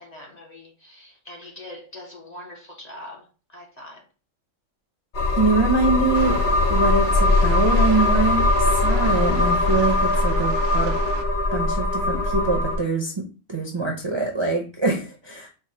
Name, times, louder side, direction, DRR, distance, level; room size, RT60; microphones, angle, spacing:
voice 1, 0.0-4.1, left 1 dB, 40° left, 0.8 m, -42 dB
sound 1, 5.1-12.8, left 2 dB, 55° left, 1.1 m, -21 dB
voice 2, 5.3-6.4 6.7-10.9 11.5-13.1 13.5-15.5, right 3 dB, 30° right, 0.5 m, -24 dB
sound 2, 6.1-11.2, right 6 dB, 70° right, 0.8 m, -35 dB
4.5 x 2.1 x 4.2 m
omnidirectional pair, 1.3 m